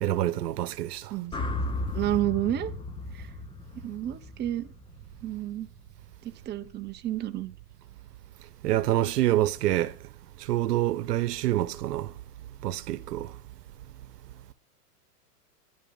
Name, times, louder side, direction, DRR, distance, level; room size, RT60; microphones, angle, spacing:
voice 1, 0.0-1.1 8.6-10.0 10.4-12.1 12.6-13.3, right 14 dB, 80° right, 1.1 m, -26 dB
sound 1, 1.3-5.5, left 2 dB, 10° left, 1.2 m, -35 dB
voice 2, 1.9-2.7 3.1-3.3 3.8-4.7 5.2-5.7 6.2-7.5, right 13 dB, 20° right, 1.1 m, -30 dB
12.5 x 11.0 x 5.6 m
supercardioid pair, 140°, 48 cm